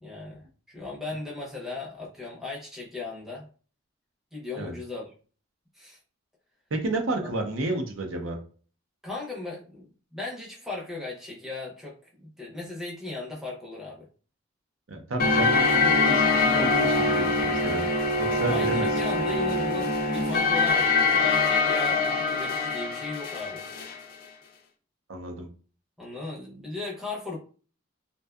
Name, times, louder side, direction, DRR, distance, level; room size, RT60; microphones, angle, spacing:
voice 1, 0.0-3.5 4.3-5.0 5.7-6.0 9.0-14.1 18.3-23.6 26.0-27.4, left 3 dB, ahead, -4 dB, 0.6 m, -37 dB
voice 2, 6.7-8.4 14.9-17.8 18.2-18.9 25.1-25.5, right 2 dB, 70° right, 3 dB, 0.6 m, -31 dB
sound 1, 15.2-24.0, left 3 dB, 45° left, 0.4 m, -24 dB
2.5 x 2.2 x 2.3 m, 0.40 s
head